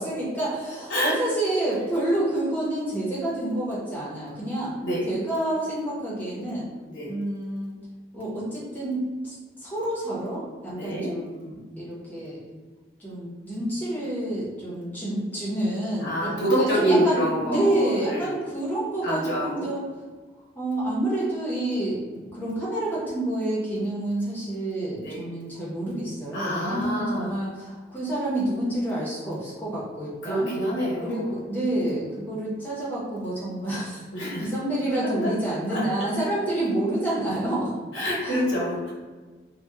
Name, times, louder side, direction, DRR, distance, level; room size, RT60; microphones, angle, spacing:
voice 1, 0.0-4.7 5.0-6.7 7.1-7.7 8.1-12.4 13.0-16.3 16.6-17.2 17.5-19.8 20.5-22.0 22.3-30.5 31.0-38.4, right 1 dB, 10° left, -8 dB, 0.7 m, -28 dB
voice 2, 10.7-11.1 16.0-18.4 19.0-19.7 25.0-25.2 26.3-27.4 30.2-31.3 34.1-34.5 35.0-35.3 35.7-36.3 37.9-38.9, equal, 90° left, -5 dB, 0.9 m, -27 dB
2.8 x 2.1 x 2.3 m, 1.3 s
head